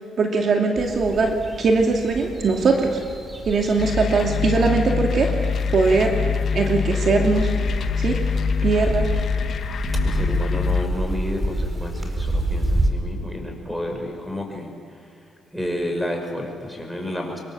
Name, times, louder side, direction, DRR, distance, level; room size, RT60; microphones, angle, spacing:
voice 1, 0.2-3.0 3.5-5.3 5.7-6.1 6.5-7.5 8.0-8.2 8.6-9.1, right 4 dB, 55° right, 2 dB, 2.6 m, -20 dB
sound 1, 0.8-12.9, right 1 dB, 25° right, 4.1 m, -29 dB
sound 2, 3.8-10.9, left 6 dB, 60° left, 1.5 m, -24 dB
voice 2, 10.0-14.7 15.5-17.4, left 1 dB, ahead, 3 dB, 6.0 m, -30 dB
26.5 x 23.0 x 7.6 m, 2.4 s
cardioid pair, 90°, 0 cm